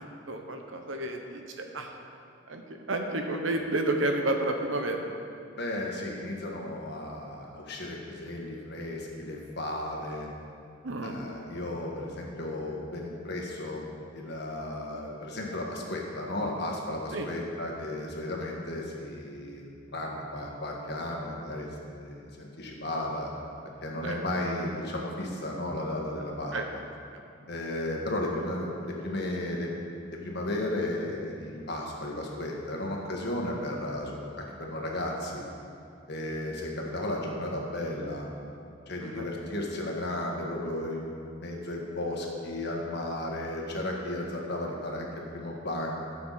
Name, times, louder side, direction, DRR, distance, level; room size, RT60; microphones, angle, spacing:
voice 1, 0.0-1.9 2.5-2.6 2.9-5.1 10.8-11.2 17.1-17.3 24.0-24.2 26.5-26.6 39.0-39.3, right 2 dB, 80° right, 4 dB, 1.1 m, -31 dB
voice 2, 5.6-10.3 11.0-13.8 14.1-23.3 23.8-26.5 27.5-29.7 30.2-35.4 36.1-38.2 38.9-41.2 41.4-45.1 45.3-46.0, left 1 dB, 60° left, -1 dB, 1.6 m, -34 dB
14.5 x 6.9 x 4.1 m, 2.4 s
head